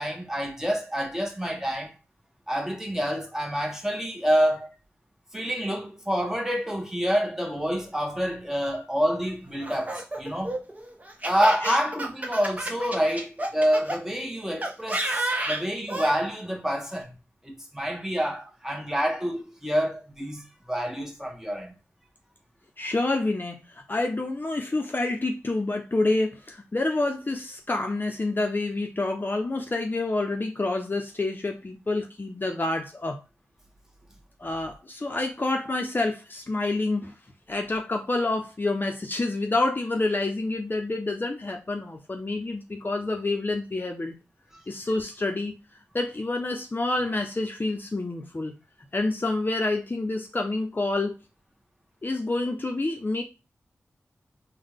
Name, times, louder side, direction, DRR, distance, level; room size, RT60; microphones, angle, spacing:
voice 1, 0.0-1.9 2.5-4.7 5.3-10.6 11.2-17.2 17.4-21.7, equal, 10° right, 1.1 m, -27 dB
Laughter, 9.6-14.0 14.6-16.2, right 1 dB, 30° right, 1.0 m, -31 dB
voice 2, 22.8-33.2 34.4-37.1 37.5-44.1 44.7-45.6 45.9-48.5 48.9-51.1 52.0-53.2, left 2 dB, 40° left, 0.7 m, -28 dB
3.8 x 2.3 x 3.5 m
cardioid pair, 45°, 5 cm